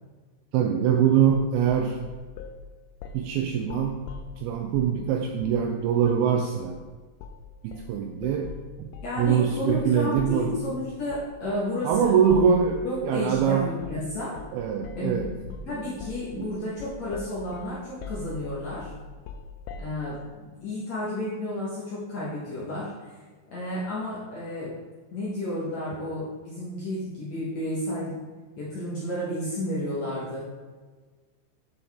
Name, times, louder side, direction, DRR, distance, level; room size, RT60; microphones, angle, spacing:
voice 1, 0.5-2.0 3.1-4.1 4.4-6.8 7.6-8.9 9.2-10.6 11.8-13.7 14.5-15.3 15.6-15.8 16.3-16.6, right 8 dB, 85° right, 3 dB, 2.2 m, -24 dB
sound 1, 1.3-2.6 3.0-3.3 3.6-5.0 5.4-5.7 6.0-6.2 6.6-6.9 7.2-7.5 7.7-12.9 13.3-13.5 13.8-14.1 14.4-14.6 14.8-20.0, left 4 dB, 90° left, 2.1 m, -41 dB
voice 2, 9.0-12.2 12.8-14.4 15.0-15.2 15.7-18.9 19.8-23.2 23.5-24.8 25.1-28.2 28.6-30.5, left 1 dB, 65° left, -7 dB, 1.8 m, -32 dB
7.8 x 6.9 x 3.5 m, 1.4 s
omnidirectional pair, 4.9 m